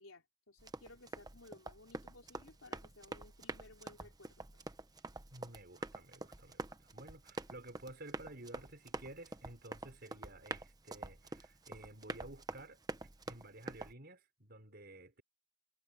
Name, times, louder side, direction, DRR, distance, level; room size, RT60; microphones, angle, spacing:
voice 1, 0.0-4.4, left 2 dB, 85° left, 3.7 m, -58 dB
Run, 0.6-13.9, right 2 dB, 20° right, 0.9 m, -47 dB
voice 2, 5.3-12.8 13.3-15.2, right 1 dB, 50° right, 4.9 m, -53 dB
head